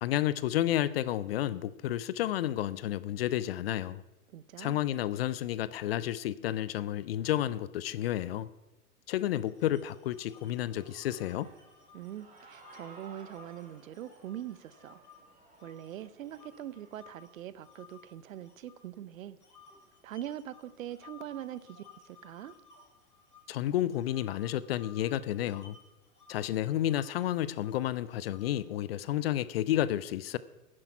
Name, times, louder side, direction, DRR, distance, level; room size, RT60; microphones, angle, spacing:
voice 1, 0.0-4.0 4.6-8.5 9.1-11.5 23.5-25.8 26.3-30.4, left 12 dB, 45° left, 18 dB, 0.5 m, -31 dB
voice 2, 4.3-4.8 11.9-15.0 15.6-19.4 20.0-22.5, right 11 dB, 60° right, 17 dB, 0.9 m, -43 dB
sound 1, 9.2-15.2 15.6-19.0 19.4-28.8, left 4 dB, 85° left, 2.8 m, -58 dB
Human voice / Cheering, 10.4-17.0, right 3 dB, 15° right, 3.8 m, -57 dB
11.0 x 10.0 x 5.9 m, 1.0 s
hypercardioid pair, 110°, 45 cm